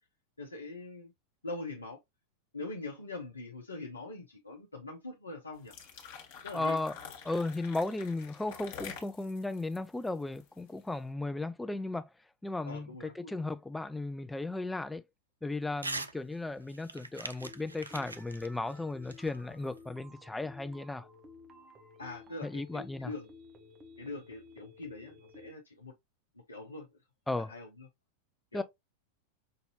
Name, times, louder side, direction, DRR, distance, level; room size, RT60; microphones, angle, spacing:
voice 1, 0.4-1.1 1.4-2.0 2.5-5.7 6.4-6.8 12.6-13.3 22.0-23.3 24.0-25.9 26.5-26.9 27.3-27.9 28.5-28.6, left 2 dB, 80° left, 0.7 m, -43 dB
sound 1, 5.5-10.8, left 7 dB, 50° left, 1.4 m, -48 dB
voice 2, 6.5-7.0 7.2-12.1 12.4-15.0 15.4-21.1 22.4-23.1 27.3-27.5 28.5-28.6, left 2 dB, 5° left, 0.4 m, -35 dB
Crumpling crinkling / Tearing, 15.8-16.1 16.5-19.8, right 3 dB, 80° right, 0.4 m, -42 dB
sound 2, 17.4-25.5, left 2 dB, 20° right, 0.9 m, -54 dB
5.6 x 2.7 x 2.8 m
figure-of-eight pair, 90°, 0 cm